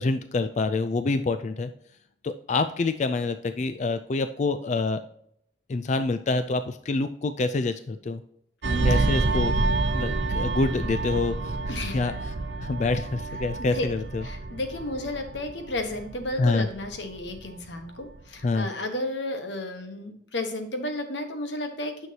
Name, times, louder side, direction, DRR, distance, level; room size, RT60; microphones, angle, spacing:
voice 1, 0.0-1.7 2.2-5.0 5.7-8.2 8.8-9.5 9.9-11.6 11.9-12.1 12.6-14.2 16.4-16.7 18.4-18.7, left 3 dB, 40° left, 10 dB, 0.4 m, -26 dB
voice 2, 8.6-9.1 11.7-12.0 13.6-13.9 14.2-22.1, left 1 dB, 90° left, 6 dB, 1.2 m, -33 dB
sound 1, 8.6-17.7 18.0-18.3, right 2 dB, 75° right, 0.7 m, -28 dB
9.4 x 6.3 x 2.8 m, 0.69 s
head